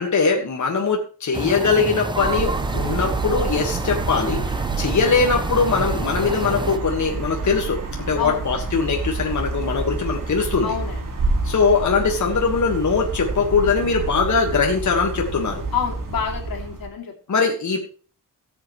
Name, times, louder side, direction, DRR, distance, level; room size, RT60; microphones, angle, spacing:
voice 1, 0.0-10.7 11.4-15.6 17.3-17.9, left 5 dB, 55° left, 1 dB, 1.7 m, -21 dB
sound 1, 1.3-6.8, right 2 dB, 15° right, 0.5 m, -28 dB
sound 2, 2.2-16.9, right 3 dB, 70° right, 2.3 m, -28 dB
voice 2, 10.6-11.0 15.7-17.1, left 6 dB, 90° left, 1 dB, 2.7 m, -27 dB
18.0 x 7.8 x 3.2 m, 0.40 s
wide cardioid pair, 175°, 34 cm